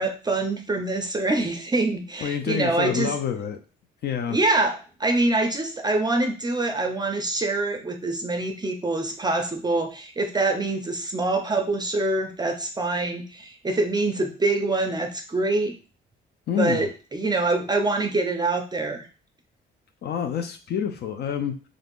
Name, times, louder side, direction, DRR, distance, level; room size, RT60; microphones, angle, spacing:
voice 1, 0.0-3.1 4.3-15.7 16.6-19.1, right 2 dB, 20° right, 4 dB, 0.4 m, -25 dB
voice 2, 2.2-3.6 4.0-4.4 16.5-16.9 20.0-21.5, left 8 dB, 55° left, 6 dB, 0.4 m, -27 dB
2.5 x 2.4 x 3.5 m, 0.36 s
cardioid pair, 90°, 20 cm